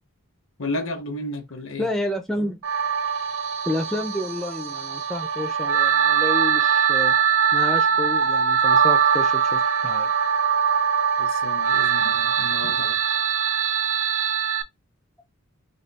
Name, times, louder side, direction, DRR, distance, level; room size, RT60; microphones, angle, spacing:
voice 1, 0.6-1.9 8.2-8.3 11.2-13.0, left 2 dB, 65° left, 0.9 m, -33 dB
voice 2, 1.8-2.6 3.7-7.1 7.5-10.1 12.6-12.7, left 1 dB, ahead, 0.3 m, -30 dB
sound 1, 2.6-14.6, right 7 dB, 65° right, 0.5 m, -22 dB
3.4 x 2.3 x 4.0 m
head